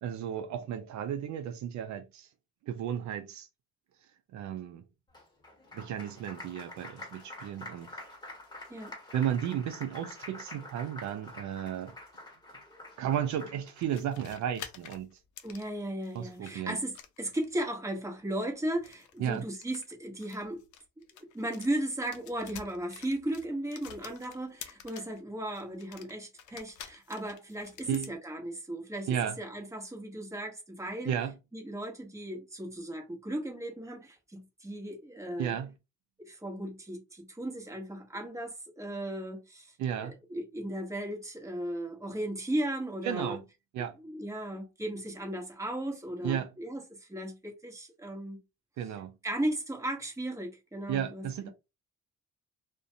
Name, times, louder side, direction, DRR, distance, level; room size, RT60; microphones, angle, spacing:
voice 1, 0.0-2.3 2.6-3.5 4.3-4.8 5.7-8.0 9.1-11.9 13.0-15.2 16.1-16.8 19.2-19.5 27.9-28.1 29.1-29.4 31.1-31.3 35.4-35.7 39.8-40.2 43.0-43.4 43.7-44.0 46.2-46.5 48.8-49.2 50.9-51.5, right 9 dB, 70° right, 0.5 m, -33 dB
Applause, 5.1-13.9, left 1 dB, 15° left, 1.3 m, -47 dB
sound 1, 13.8-16.5 16.9-17.6 18.7-21.7 22.0-25.2 25.5-28.1, left 9 dB, 75° left, 0.5 m, -49 dB
voice 2, 15.4-20.6 21.1-31.1 31.5-35.6 36.2-39.7 40.0-43.4 44.0-48.4 49.2-51.5, right 1 dB, 10° right, 1.0 m, -36 dB
2.4 x 2.2 x 2.7 m
cardioid pair, 90°, 30 cm